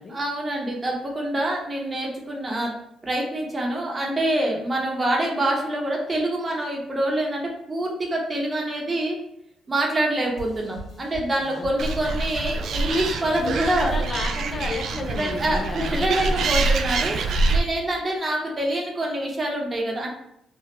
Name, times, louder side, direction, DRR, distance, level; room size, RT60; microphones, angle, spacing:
voice 1, 0.1-9.2 9.7-13.9 15.1-17.2 17.5-20.1, right 1 dB, 30° right, -1 dB, 0.8 m, -26 dB
sound 1, 10.4-14.2, left 1 dB, 55° left, 1.2 m, -41 dB
Animal, 11.8-17.6, right 3 dB, 65° right, 0.3 m, -25 dB
voice 2, 13.4-16.5, left 3 dB, 35° left, 2 dB, 0.4 m, -33 dB
3.2 x 2.2 x 2.9 m, 0.76 s
cardioid pair, 90°, 0 cm